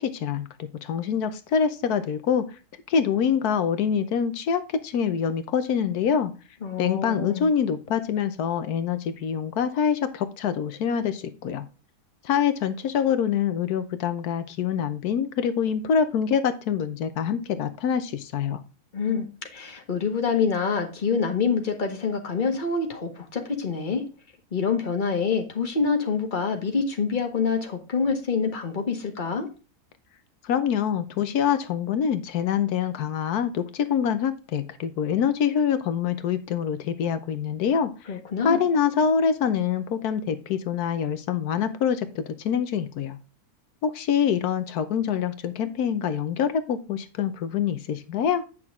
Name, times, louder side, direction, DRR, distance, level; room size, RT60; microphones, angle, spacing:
voice 1, 0.0-2.6 2.9-6.3 6.8-11.6 12.2-18.6 30.4-38.2 38.4-43.2 43.8-48.4, left 7 dB, 85° left, 10 dB, 1.3 m, -25 dB
voice 2, 6.6-7.5 18.9-19.3 19.5-24.0 24.5-29.5 38.1-38.6, left 5 dB, 30° left, 4 dB, 1.7 m, -26 dB
9.4 x 6.1 x 3.6 m, 0.33 s
omnidirectional pair, 1.6 m